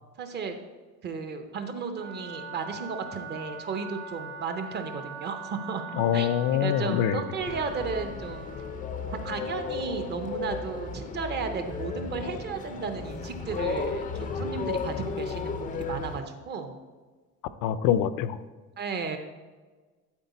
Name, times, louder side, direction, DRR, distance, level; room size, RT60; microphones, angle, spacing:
voice 1, 0.2-0.6 1.0-6.3 6.6-8.5 9.1-16.8 18.8-19.2, right 5 dB, 30° right, 7 dB, 0.6 m, -34 dB
Wind instrument woodwind instrument, 1.9-8.9, right 4 dB, 60° right, 1.8 m, -42 dB
voice 2, 6.0-7.2 17.6-18.4, left 10 dB, 75° left, 14 dB, 0.5 m, -24 dB
sound 1, 7.4-16.2, left 4 dB, 25° left, 0.4 m, -34 dB
11.5 x 4.4 x 4.1 m, 1.3 s
cardioid pair, 180°, 34 cm